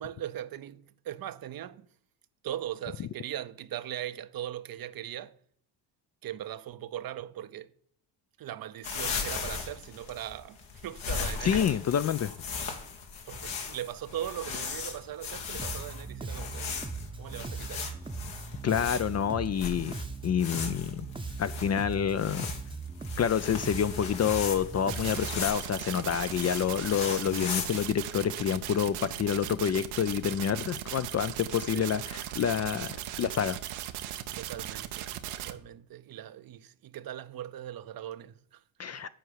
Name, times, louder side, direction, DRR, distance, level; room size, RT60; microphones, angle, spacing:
voice 1, 0.0-1.9 2.4-5.4 6.2-7.7 8.4-11.6 13.2-16.7 17.2-18.1 31.7-31.9 34.3-39.1, right 11 dB, 50° right, 0.6 m, -40 dB
sound 1, 8.8-27.9, left 5 dB, 75° left, 1.7 m, -38 dB
voice 2, 11.4-12.3 18.6-19.9 20.2-21.1 21.4-22.5 23.2-33.6 38.8-39.1, left 8 dB, 35° left, 0.4 m, -28 dB
Bass guitar, 15.6-25.5, right 4 dB, 10° right, 0.7 m, -39 dB
sound 2, 24.9-35.5, right 12 dB, 90° right, 0.8 m, -38 dB
7.8 x 4.6 x 6.4 m
supercardioid pair, 70°, 48 cm